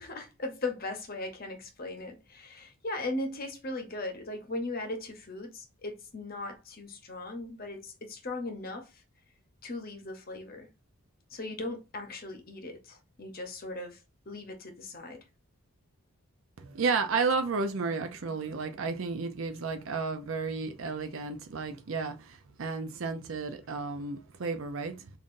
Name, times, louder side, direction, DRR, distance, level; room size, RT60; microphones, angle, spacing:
voice 1, 0.0-8.9 9.6-10.7 11.3-14.0 14.3-15.2, left 2 dB, 40° left, 0.8 m, -38 dB
voice 2, 16.6-25.1, right 4 dB, 65° right, 0.5 m, -32 dB
5.4 x 2.5 x 2.5 m
head